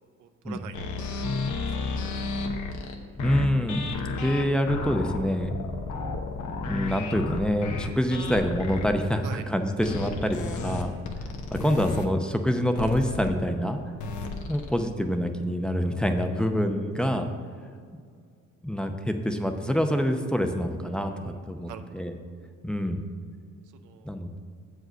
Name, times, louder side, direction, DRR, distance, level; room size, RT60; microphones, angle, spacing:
voice 1, 0.2-1.1 1.6-2.0 9.2-9.4 10.8-11.1 21.0-21.3 21.7-22.1 23.7-24.1, right 8 dB, 85° right, 8 dB, 0.7 m, -44 dB
sound 1, 0.7-8.9 9.8-12.0 12.8-13.3 14.0-14.7, left 3 dB, 75° left, 1.1 m, -32 dB
voice 2, 3.2-3.9 4.2-5.6 6.7-11.0 11.5-13.8 14.5-17.3 18.6-22.1 22.6-23.0 24.0-24.3, equal, 5° left, 5 dB, 0.7 m, -26 dB
7.7 x 5.0 x 6.5 m, 2.1 s
cardioid pair, 90°, 30 cm